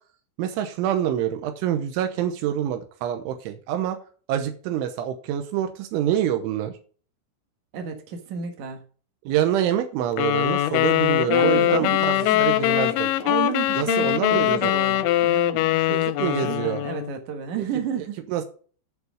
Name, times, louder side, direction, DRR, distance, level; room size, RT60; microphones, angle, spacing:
voice 1, 0.4-4.0 4.3-6.7 9.3-13.1 13.8-14.6 15.9-16.8 18.3-18.5, right 10 dB, 85° right, 7 dB, 3.2 m, -26 dB
voice 2, 7.7-8.8 11.3-12.8 13.2-18.2, right 8 dB, 65° right, 4 dB, 1.9 m, -32 dB
sound 1, 10.2-17.1, left 14 dB, 85° left, 2.7 m, -22 dB
11.0 x 4.8 x 5.1 m, 0.42 s
omnidirectional pair, 5.7 m